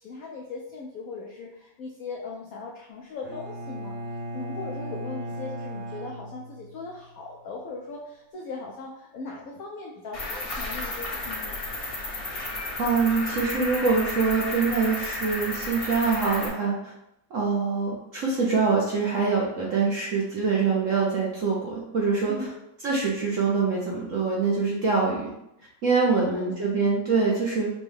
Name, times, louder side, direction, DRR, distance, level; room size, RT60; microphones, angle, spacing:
voice 1, 0.0-4.0 4.3-11.6 22.3-22.5 26.1-26.6, left 3 dB, 80° left, -2 dB, 0.8 m, -39 dB
Bowed string instrument, 3.2-7.1, equal, 80° right, 1.5 m, -37 dB
Cricket, 10.1-16.5, left 2 dB, 40° left, 0.9 m, -33 dB
voice 2, 12.8-16.9 17.3-22.5 22.8-25.3 25.8-27.7, right 4 dB, 60° right, -4 dB, 0.8 m, -24 dB
5.3 x 2.3 x 3.3 m, 0.82 s
omnidirectional pair, 2.1 m